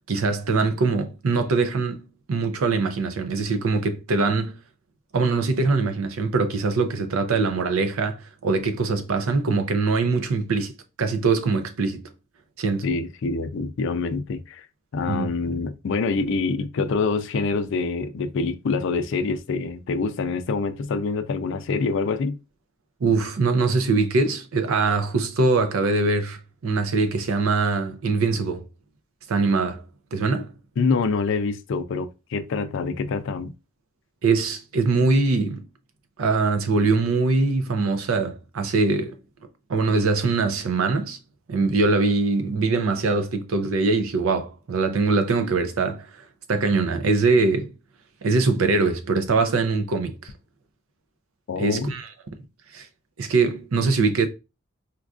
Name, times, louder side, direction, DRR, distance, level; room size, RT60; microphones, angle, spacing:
voice 1, 0.1-4.6 5.1-12.1 12.6-12.9 15.1-15.3 23.0-28.7 29.3-29.8 30.1-30.5 34.2-35.6 36.2-39.2 39.7-41.2 41.5-46.1 46.5-47.7 48.2-50.3 51.6-52.1 52.7-52.9 53.2-54.3, right 3 dB, 85° right, 0.5 m, -22 dB
voice 2, 12.8-14.7 14.9-22.4 30.8-33.5 51.5-51.9, left 4 dB, 65° left, 0.4 m, -26 dB
4.4 x 2.4 x 2.3 m
head